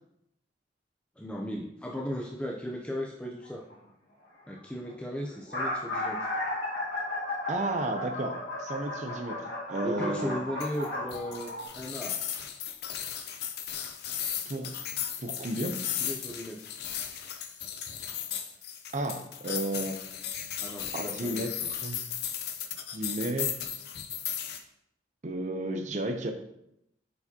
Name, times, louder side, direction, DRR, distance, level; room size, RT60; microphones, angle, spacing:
voice 1, 1.2-3.7 4.5-6.3 9.8-12.2 16.0-17.0 20.6-21.7, equal, 5° left, -1 dB, 0.5 m, -37 dB
sound 1, 3.4-3.7 4.6-4.7 4.8-4.9 5.3-11.7, left 1 dB, 85° left, 2.0 m, -34 dB
voice 2, 7.5-10.4 14.5-14.7 15.2-15.8 18.9-20.0 20.9-22.0 22.9-23.7 25.2-26.3, right 1 dB, 45° right, 5 dB, 0.6 m, -33 dB
sound 2, 10.6-24.6, left 9 dB, 65° left, 0.6 m, -36 dB
7.9 x 4.8 x 2.8 m, 0.78 s
head